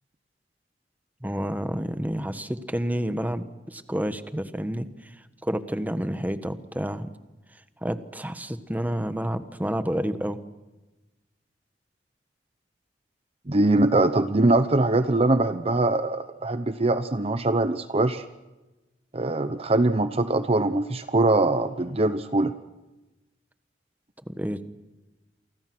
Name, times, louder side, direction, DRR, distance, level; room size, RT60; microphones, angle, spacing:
voice 1, 1.2-4.9 5.4-7.1 7.8-10.4 24.3-24.6, equal, 10° right, 11 dB, 1.3 m, -29 dB
voice 2, 13.5-18.2 19.1-22.5, right 2 dB, 35° right, 11 dB, 0.9 m, -22 dB
29.0 x 24.0 x 6.2 m, 1.1 s
head